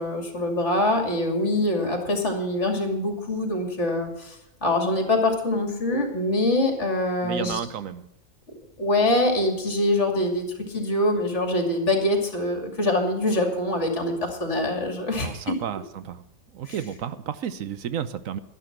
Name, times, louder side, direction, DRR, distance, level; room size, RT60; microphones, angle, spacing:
voice 1, 0.0-7.6 8.8-15.5 16.7-16.8, left 1 dB, 55° left, 4 dB, 2.8 m, -24 dB
voice 2, 7.2-8.1 15.2-16.2 16.5-18.4, right 9 dB, 75° right, 13 dB, 1.1 m, -32 dB
11.5 x 11.5 x 5.9 m, 0.85 s
omnidirectional pair, 1.5 m